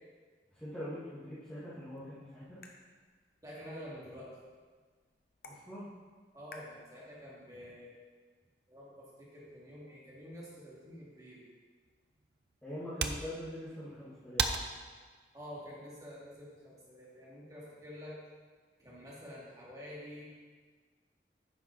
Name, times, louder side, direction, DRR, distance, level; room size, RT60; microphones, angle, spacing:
voice 1, 0.5-2.6 5.5-5.9 12.6-14.5, equal, 10° left, -14 dB, 2.0 m, -43 dB
sound 1, 1.7-7.7, left 3 dB, 55° left, 0.9 m, -59 dB
voice 2, 3.4-4.4 6.3-7.9 8.7-11.5 15.3-18.2 18.8-20.2, equal, 20° right, -7 dB, 2.3 m, -48 dB
sound 2, 11.8-16.9, right 6 dB, 70° right, 0.6 m, -40 dB
9.9 x 5.8 x 4.6 m, 1.5 s
head